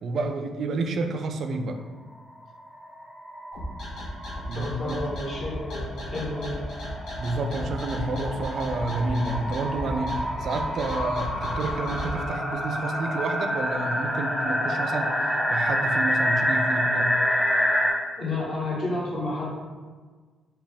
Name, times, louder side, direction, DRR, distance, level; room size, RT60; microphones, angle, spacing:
voice 1, 0.0-1.8 4.5-5.0 7.2-15.1 15.5-17.2, right 3 dB, 60° right, 6 dB, 0.3 m, -29 dB
sound 1, 2.3-2.4 2.6-2.7 2.9-17.9, equal, 5° left, 0.6 m, -28 dB
sound 2, 3.5-12.1, left 1 dB, 75° left, 0.9 m, -35 dB
voice 2, 4.5-6.6 18.2-19.5, left 2 dB, 45° left, -6 dB, 1.3 m, -31 dB
4.0 x 2.2 x 3.5 m, 1.4 s
cardioid pair, 90°, 0 cm